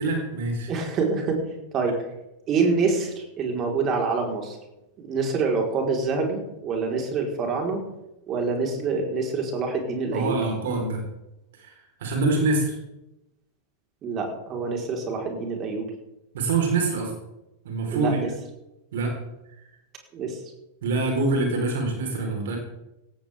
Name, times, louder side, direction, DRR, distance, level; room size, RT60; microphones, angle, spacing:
voice 1, 0.0-0.7 10.1-11.0 11.6-11.7 12.0-12.7 16.3-17.1 17.6-18.2 18.9-19.2 20.8-22.6, right 3 dB, 60° right, 1 dB, 4.4 m, -25 dB
voice 2, 0.7-1.4 1.7-2.0 2.5-4.6 5.0-7.8 8.3-10.4 14.0-15.9 17.9-18.3 20.1-20.4, right 4 dB, 30° right, 1 dB, 4.5 m, -26 dB
17.5 x 15.0 x 3.7 m, 0.92 s
figure-of-eight pair, 90°, 0 cm